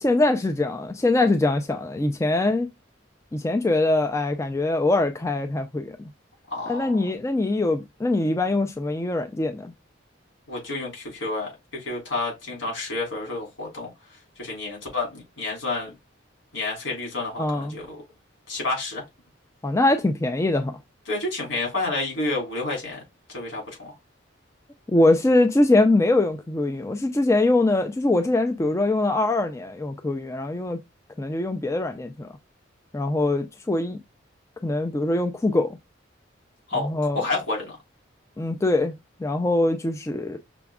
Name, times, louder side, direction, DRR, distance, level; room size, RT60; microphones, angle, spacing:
voice 1, 0.0-2.7 3.3-6.1 6.7-9.7 17.4-17.7 19.6-20.7 24.9-30.8 31.2-32.3 32.9-34.0 34.6-35.8 36.8-37.2 38.4-38.9 39.2-40.4, left 2 dB, 15° left, 0.3 m, -23 dB
voice 2, 6.5-7.0 10.5-13.9 14.4-15.9 16.5-18.0 18.5-19.0 21.1-23.0 23.3-23.9 36.7-37.8, left 2 dB, 75° left, 3.2 m, -30 dB
6.0 x 2.3 x 3.5 m
head